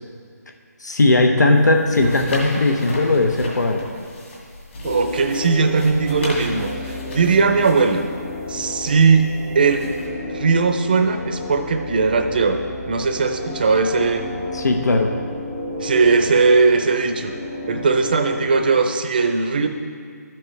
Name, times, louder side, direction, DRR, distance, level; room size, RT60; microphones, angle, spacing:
voice 1, 0.8-3.8 14.5-15.1, left 2 dB, 85° left, 4 dB, 0.9 m, -18 dB
sound 1, 1.5-10.1, left 1 dB, 45° left, 2.1 m, -36 dB
sound 2, 4.8-18.7, left 2 dB, 25° left, 0.6 m, -32 dB
voice 2, 4.8-8.0 8.5-9.9 10.2-12.6 12.9-14.3 15.8-17.3 17.7-19.7, right 4 dB, 30° right, 7 dB, 0.6 m, -18 dB
13.0 x 7.5 x 3.3 m, 2.1 s
hypercardioid pair, 170°, 9 cm